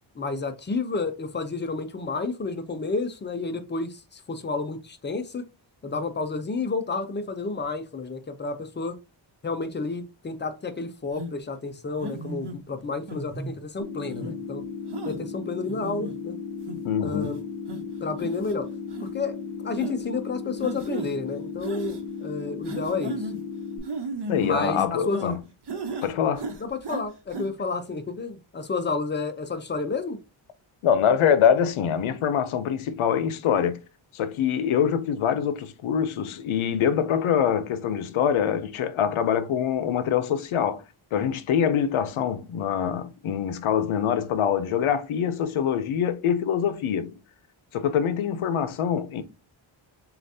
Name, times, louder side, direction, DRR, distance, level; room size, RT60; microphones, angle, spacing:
voice 1, 0.2-5.4 5.8-9.0 9.4-14.6 15.0-16.4 17.0-17.4 18.0-18.7 19.0-19.4 19.6-23.3 24.3-25.3 26.6-30.2, left 4 dB, 25° left, 0.5 m, -30 dB
sound 1, 11.2-11.3 12.0-12.6 13.1-13.5 14.1-14.3 14.9-15.2 15.7-16.1 16.7-16.8 17.1-17.3 17.7-17.8 18.2-18.5 18.9-19.1 19.8-20.0 20.6-21.1 21.6-22.0 22.6-23.4 23.8-25.4 25.7-26.1 26.4-27.0 27.3-27.5, right 2 dB, 55° right, 1.0 m, -34 dB
sound 2, 13.8-23.8, left 5 dB, 10° right, 1.4 m, -36 dB
voice 2, 16.8-17.3 24.3-25.4 26.0-26.5 30.8-33.8 34.1-40.8 41.1-47.1 47.7-49.2, left 8 dB, 85° left, 0.7 m, -24 dB
6.8 x 2.4 x 2.7 m
wide cardioid pair, 175°, 48 cm